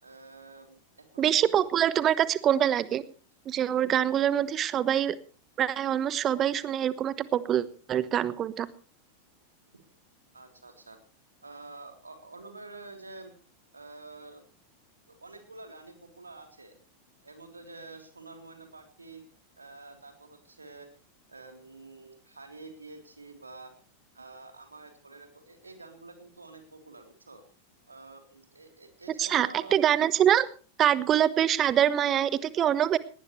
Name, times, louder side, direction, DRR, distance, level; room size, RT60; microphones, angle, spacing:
voice 1, 0.0-1.5 10.3-11.0 11.4-13.3 13.7-14.4 15.1-16.8 17.2-19.2 19.6-20.9 21.3-23.7 24.1-27.4 27.9-29.8, right 3 dB, 80° right, 5 dB, 3.5 m, -48 dB
voice 2, 1.2-3.0 3.5-5.1 5.6-8.7 29.2-30.5 30.8-33.0, right 10 dB, 30° right, 17 dB, 1.1 m, -25 dB
19.0 x 18.5 x 3.2 m, 0.37 s
figure-of-eight pair, 90°, 0 cm